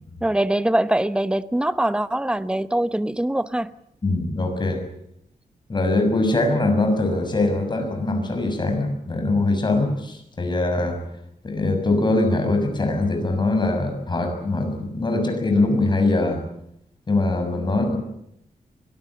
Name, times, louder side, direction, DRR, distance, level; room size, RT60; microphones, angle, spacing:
voice 1, 0.2-3.7, right 1 dB, 5° right, 13 dB, 0.9 m, -23 dB
voice 2, 4.0-4.8 5.7-11.0 11.4-16.4 17.1-18.0, left 2 dB, 30° left, 5 dB, 6.6 m, -22 dB
24.5 x 18.5 x 8.7 m, 0.75 s
wide cardioid pair, 125°, 14 cm